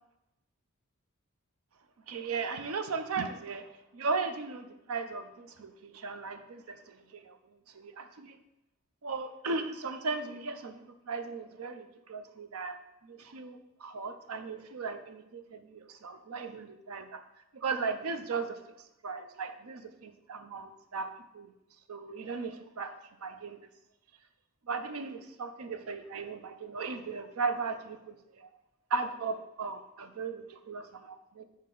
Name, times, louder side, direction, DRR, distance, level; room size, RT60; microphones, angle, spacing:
voice 1, 2.1-3.6 3.9-6.8 7.1-7.4 7.8-8.3 9.0-10.7 11.1-12.8 13.0-15.2 16.0-17.2 17.6-18.6 19.0-21.1 21.3-21.5 21.9-23.0 23.2-23.6 24.7-28.2 28.9-31.4, right 4 dB, 85° right, 9 dB, 0.5 m, -36 dB
6.5 x 4.2 x 3.8 m, 0.88 s
head